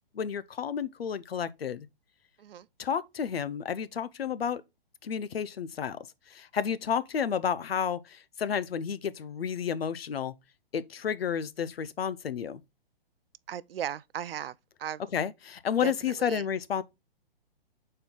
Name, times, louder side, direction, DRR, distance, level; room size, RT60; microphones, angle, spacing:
voice 1, 0.1-1.9 2.8-4.6 5.0-6.0 6.3-10.3 10.7-12.6 15.1-16.8, left 7 dB, 80° left, 0.7 m, -31 dB
voice 2, 13.5-15.0 15.8-16.4, right 10 dB, 70° right, 0.5 m, -37 dB
6.5 x 4.4 x 3.7 m
hypercardioid pair, 135°, 30 cm